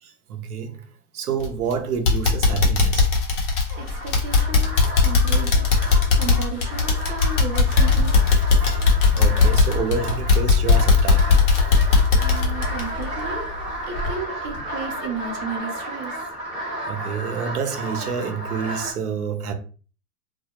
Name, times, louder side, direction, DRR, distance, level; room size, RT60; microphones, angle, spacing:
voice 1, 0.0-3.1 8.5-11.6 16.9-19.5, right 6 dB, 80° right, 0.7 m, -29 dB
sound 1, 1.4-1.7 2.1-13.6 14.0-14.1 14.6-14.7, left 4 dB, 55° left, 0.9 m, -18 dB
sound 2, 3.7-18.9, right 1 dB, ahead, 0.7 m, -33 dB
voice 2, 3.7-8.4 12.2-13.5 13.8-16.2, right 5 dB, 25° right, 0.4 m, -34 dB
2.3 x 2.0 x 2.7 m
hypercardioid pair, 125°, 44 cm